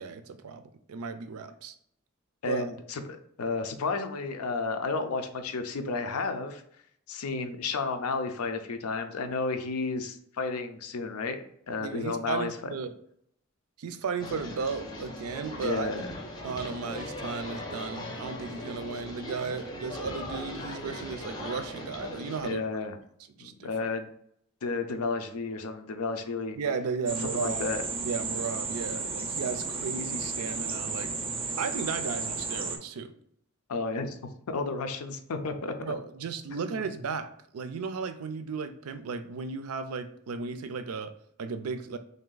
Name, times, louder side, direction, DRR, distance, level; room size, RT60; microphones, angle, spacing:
voice 1, 0.0-1.7 2.4-2.7 11.8-12.9 13.8-15.9 16.4-22.7 23.4-23.7 26.6-27.7 28.0-31.2 31.5-33.1 35.8-41.1 41.4-42.0, right 5 dB, 85° right, 10 dB, 0.4 m, -35 dB
voice 2, 2.4-3.0 3.4-6.6 7.1-12.5 15.6-16.1 22.4-23.0 23.4-24.1 24.6-26.6 27.3-27.8 33.7-34.2 34.5-35.9 36.5-36.8, left 4 dB, 90° left, 8 dB, 0.5 m, -32 dB
sound 1, 14.2-22.5, left 1 dB, 20° left, 0.6 m, -39 dB
sound 2, 27.1-32.8, right 4 dB, 25° right, 0.4 m, -33 dB
3.4 x 2.7 x 3.8 m, 0.67 s
head